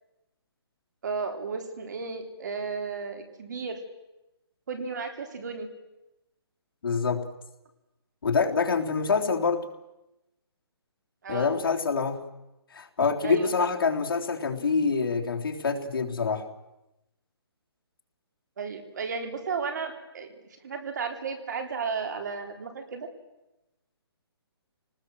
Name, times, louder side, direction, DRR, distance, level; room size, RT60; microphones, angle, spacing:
voice 1, 1.0-3.8 4.7-5.7 11.2-11.6 13.2-13.5 18.6-20.3 20.6-23.1, right 5 dB, 45° right, 6 dB, 3.5 m, -33 dB
voice 2, 6.8-7.3 8.2-9.6 11.3-12.2 12.7-16.4, left 5 dB, 60° left, 1 dB, 3.4 m, -26 dB
28.5 x 19.5 x 7.7 m, 0.95 s
hypercardioid pair, 175°, 14 cm